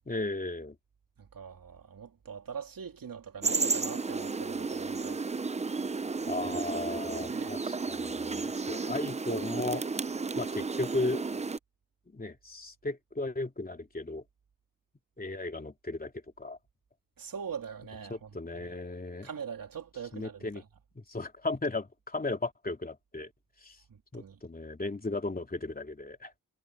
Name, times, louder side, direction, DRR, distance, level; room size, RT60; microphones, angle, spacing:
voice 1, 0.1-0.8 6.3-9.9 10.4-11.2 12.1-14.2 15.2-16.1 16.4-16.6 18.1-19.3 20.1-20.6 20.9-23.3 23.6-23.8 24.1-26.3, left 2 dB, 25° left, 3.0 m, -35 dB
voice 2, 1.2-5.2 6.9-7.6 17.2-18.3 18.6-18.7 19.2-20.6 23.9-24.4, right 7 dB, 75° right, 3.2 m, -42 dB
sound 1, 3.4-11.6, right 4 dB, 20° right, 0.5 m, -33 dB
wide cardioid pair, 110°, 34 cm